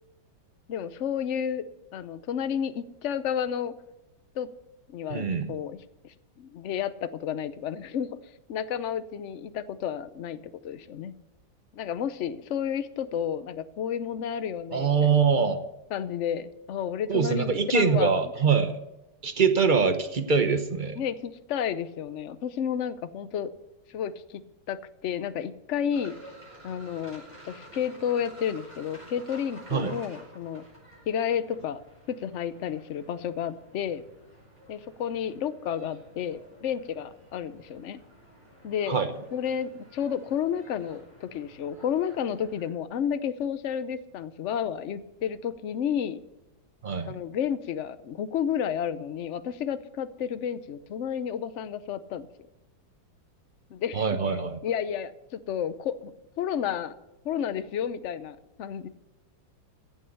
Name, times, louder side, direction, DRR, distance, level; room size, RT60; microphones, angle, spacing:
voice 1, 0.7-1.6 1.9-3.7 4.4-4.5 4.9-5.8 6.0-8.2 8.5-11.1 11.7-15.2 15.9-18.2 20.9-23.5 23.9-24.4 24.7-26.1 26.6-30.6 31.1-31.8 32.1-34.0 34.7-38.0 38.6-39.0 39.3-46.2 47.0-52.3 53.7-54.1 54.6-56.1 56.4-56.9 57.2-58.9, left 8 dB, 75° left, 13 dB, 0.6 m, -31 dB
voice 2, 5.1-5.6 14.7-15.6 17.1-18.8 19.2-21.0 29.7-29.9 38.9-39.1 46.8-47.2 53.9-54.6, right 5 dB, 40° right, 9 dB, 0.7 m, -24 dB
sound 1, 25.9-42.7, right 1 dB, 15° right, 5.1 m, -51 dB
15.0 x 7.8 x 6.6 m, 0.96 s
omnidirectional pair, 2.1 m